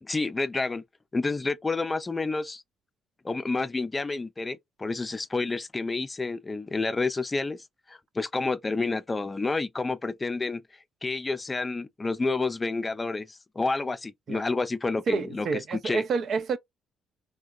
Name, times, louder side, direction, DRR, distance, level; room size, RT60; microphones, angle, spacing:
voice 1, 0.0-0.8 1.1-2.6 3.2-10.6 11.0-16.0, left 3 dB, 25° left, 0.4 m, -29 dB
voice 2, 15.1-16.6, right 5 dB, 55° right, 0.4 m, -28 dB
3.5 x 2.2 x 2.3 m
hypercardioid pair, 55°, 0 cm